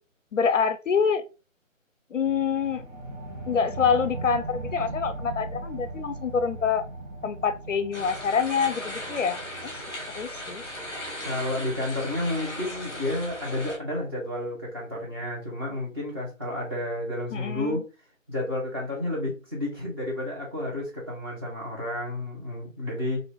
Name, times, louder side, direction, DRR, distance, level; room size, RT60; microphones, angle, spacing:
voice 1, 0.3-1.2 2.1-2.8 3.5-6.9 7.2-9.7 10.1-10.6 17.3-17.8, left 6 dB, 65° left, 0.5 m, -26 dB
sound 1, 2.2-13.3, right 2 dB, 65° right, 1.0 m, -40 dB
sound 2, 7.9-13.8, left 1 dB, 15° left, 1.1 m, -37 dB
voice 2, 11.2-17.8 18.3-23.2, left 1 dB, 20° right, 1.0 m, -31 dB
2.8 x 2.6 x 3.2 m
figure-of-eight pair, 155°, 40 cm